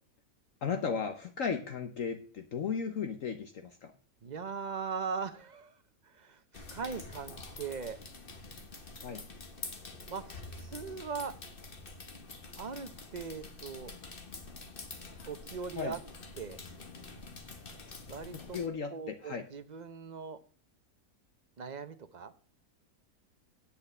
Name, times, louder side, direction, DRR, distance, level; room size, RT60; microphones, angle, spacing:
voice 1, 0.6-3.9 9.0-9.2 15.1-15.3 15.8-15.9 18.3-19.4, left 6 dB, 60° left, 7 dB, 1.3 m, -35 dB
voice 2, 4.2-5.8 6.0-8.0 10.1-11.3 12.6-13.9 15.2-16.0 16.4-16.6 18.1-18.6 18.9-20.4 21.6-22.3, right 5 dB, 40° right, 10 dB, 0.7 m, -40 dB
sound 1, 6.5-18.7, left 3 dB, 40° left, 1.4 m, -47 dB
9.9 x 8.6 x 5.5 m, 0.42 s
omnidirectional pair, 1.6 m